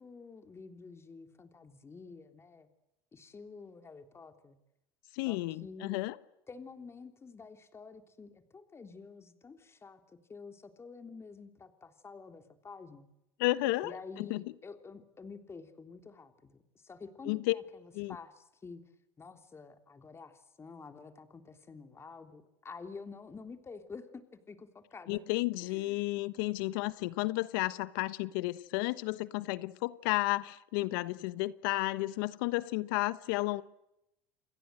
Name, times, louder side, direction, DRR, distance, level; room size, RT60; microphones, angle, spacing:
voice 1, 0.0-2.7 3.1-4.6 5.3-6.0 6.5-10.0 10.3-13.1 13.8-18.8 19.2-25.2 25.6-26.0, left 4 dB, 25° left, 3.4 m, -49 dB
voice 2, 5.1-6.2 13.4-14.4 17.2-17.6 17.9-18.2 25.1-33.6, left 20 dB, 75° left, 1.2 m, -32 dB
29.5 x 22.0 x 7.9 m
supercardioid pair, 100°, 11 cm